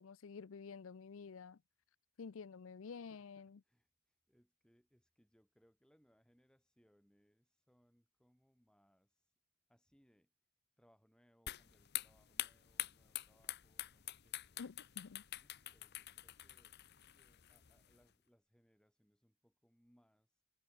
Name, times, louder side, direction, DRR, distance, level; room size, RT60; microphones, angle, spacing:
voice 1, 0.0-1.6 2.2-3.6 14.6-15.2, left 5 dB, 65° left, 0.5 m, -50 dB
voice 2, 2.9-9.3 9.7-10.3 10.8-14.7 15.4-16.8 17.1-20.4, equal, 5° left, 5.4 m, -74 dB
sound 1, 11.5-18.0, left 14 dB, 50° left, 0.9 m, -46 dB
head